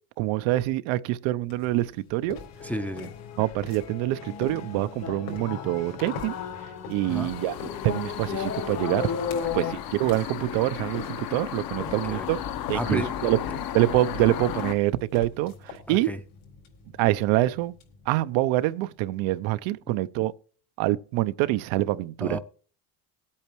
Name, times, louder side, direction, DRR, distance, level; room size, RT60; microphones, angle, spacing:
voice 1, 0.2-2.4 3.4-6.4 6.9-7.5 7.8-9.1 9.5-12.4 12.7-13.4 13.7-16.1 17.0-17.7 18.1-20.3 20.8-22.4, right 16 dB, 85° right, 0.7 m, -25 dB
sound 1, 1.4-18.9, left 3 dB, 75° left, 4.0 m, -46 dB
sound 2, 2.4-9.7, left 7 dB, 35° left, 1.0 m, -35 dB
voice 2, 2.6-3.1 7.0-7.3 9.4-9.8 11.8-12.3 12.7-13.1 15.9-16.2 22.2-22.4, equal, 5° left, 0.5 m, -32 dB
sound 3, 7.1-14.7, left 10 dB, 50° left, 0.9 m, -35 dB
21.0 x 8.7 x 3.0 m
cardioid pair, 140°, 45 cm